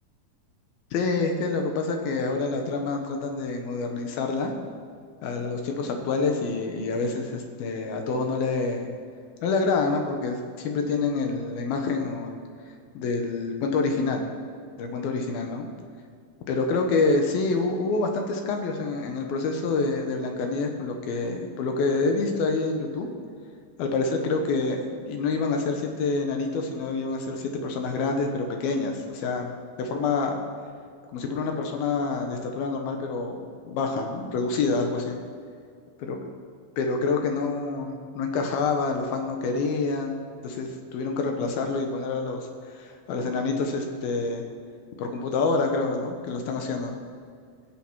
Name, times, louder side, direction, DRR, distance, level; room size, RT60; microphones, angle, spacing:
voice 1, 0.9-4.5 5.2-8.9 9.4-12.4 12.9-14.3 14.8-15.7 16.5-23.1 23.8-29.5 29.8-30.3 31.1-35.2 36.0-36.2 36.8-42.5 42.7-44.4 45.0-47.0, left 3 dB, 80° left, 3 dB, 3.1 m, -27 dB
22.0 x 7.5 x 4.7 m, 2.2 s
omnidirectional pair, 4.2 m